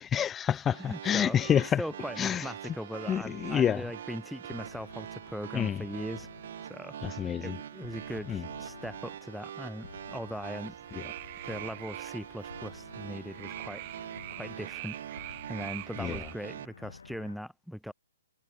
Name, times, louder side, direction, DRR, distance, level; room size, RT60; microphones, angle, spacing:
voice 1, 0.0-1.8 2.2-2.5 3.1-3.8 5.5-5.8 7.0-7.6 8.3-8.4 10.9-11.0 16.0-16.3, left 9 dB, 15° left, 1.1 m, -28 dB
sound 1, 0.7-16.7, right 10 dB, 55° right, 2.8 m, -44 dB
voice 2, 0.8-7.0 7.4-10.7 11.4-13.8 14.3-17.9, equal, ahead, 1.2 m, -40 dB
sound 2, 3.2-17.4, left 5 dB, 75° left, 4.8 m, -52 dB
sound 3, 10.6-16.3, right 23 dB, 35° right, 1.9 m, -44 dB
figure-of-eight pair, 130°, 0 cm